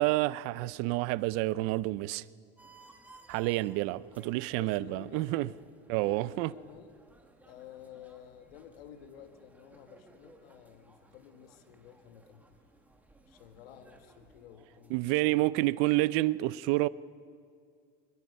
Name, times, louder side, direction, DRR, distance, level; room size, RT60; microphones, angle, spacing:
voice 1, 0.0-2.2 3.3-5.5 5.9-6.5 14.9-16.9, right 19 dB, 50° right, 0.5 m, -29 dB
sound 1, 2.6-15.3, right 2 dB, 5° right, 1.5 m, -60 dB
voice 2, 4.5-5.6 5.9-6.9 7.5-12.4 13.3-15.5, left 9 dB, 85° left, 1.7 m, -52 dB
22.5 x 21.5 x 5.5 m
supercardioid pair, 145°, 29 cm